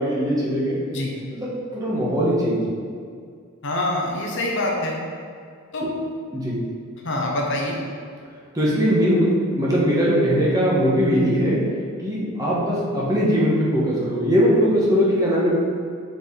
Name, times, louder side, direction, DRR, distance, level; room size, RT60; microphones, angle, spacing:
voice 1, 0.0-0.8 1.3-2.6 5.8-5.9 6.3-6.6 8.5-11.7 12.0-15.5, equal, 15° right, -6 dB, 1.4 m, -20 dB
voice 2, 3.6-5.0 5.7-5.9 7.0-7.8, left 1 dB, 60° left, -1 dB, 0.9 m, -25 dB
6.5 x 4.8 x 3.9 m, 2.1 s
head